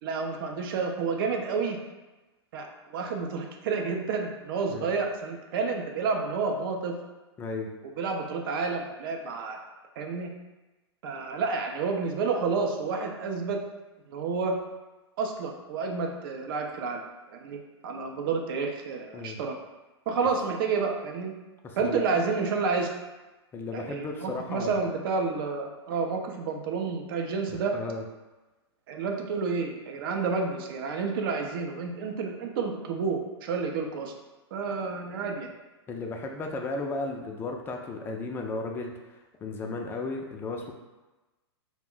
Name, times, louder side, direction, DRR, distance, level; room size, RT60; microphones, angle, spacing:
voice 1, 0.0-1.8 2.5-7.0 8.0-9.6 10.0-10.3 11.0-13.6 14.1-14.6 15.2-17.0 17.3-19.6 20.1-21.3 21.8-22.9 23.7-27.8 28.9-34.1 34.5-35.5, right 4 dB, 55° right, 3 dB, 0.5 m, -30 dB
voice 2, 7.4-7.7 19.1-19.4 21.6-22.0 23.5-24.9 27.5-28.0 35.9-39.1 39.4-40.7, left 3 dB, 15° left, 2 dB, 0.3 m, -35 dB
2.4 x 2.1 x 3.6 m, 1.1 s
hypercardioid pair, 110°, 14 cm